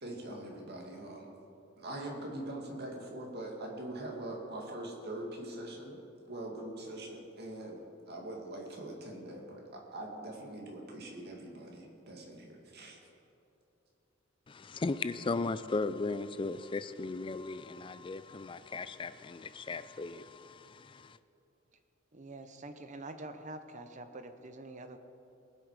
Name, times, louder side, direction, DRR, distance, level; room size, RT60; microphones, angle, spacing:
voice 1, 0.0-1.3 1.8-6.0 6.3-13.0, right 1 dB, 55° right, 0 dB, 2.3 m, -43 dB
voice 2, 14.5-21.2, left 3 dB, 25° left, 14 dB, 0.4 m, -37 dB
voice 3, 22.1-25.0, right 2 dB, 35° right, 8 dB, 0.8 m, -46 dB
19.5 x 8.1 x 4.9 m, 2.8 s
head